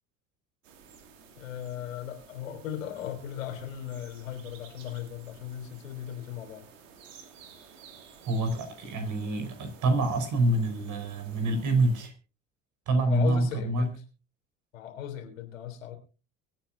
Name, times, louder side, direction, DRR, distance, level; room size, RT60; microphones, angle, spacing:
sound 1, 0.6-12.1, right 6 dB, 75° right, 2.4 m, -53 dB
voice 1, 1.4-6.7 13.1-14.0 14.7-16.0, left 10 dB, 75° left, 5 dB, 3.4 m, -37 dB
voice 2, 8.2-12.1 12.9-13.9, right 2 dB, 50° right, 6 dB, 4.8 m, -26 dB
24.0 x 9.1 x 2.6 m, 0.34 s
figure-of-eight pair, 65°, 39 cm